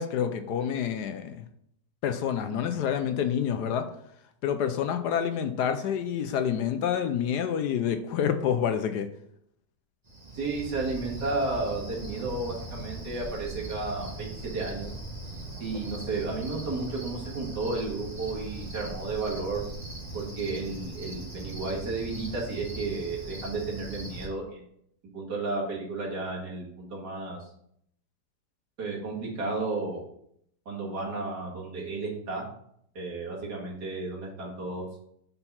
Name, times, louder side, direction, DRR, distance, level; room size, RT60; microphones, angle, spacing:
voice 1, 0.0-1.5 2.0-3.9 4.4-9.1, left 8 dB, 75° left, 8 dB, 1.1 m, -28 dB
Cricket, 10.1-24.3, right 2 dB, 25° right, 1.4 m, -39 dB
voice 2, 10.3-14.9 15.6-19.6 20.1-24.6 25.1-27.5 28.8-30.0 30.7-32.4 32.9-34.8, right 3 dB, 65° right, -4 dB, 2.7 m, -33 dB
5.4 x 4.4 x 5.5 m, 0.70 s
omnidirectional pair, 1.9 m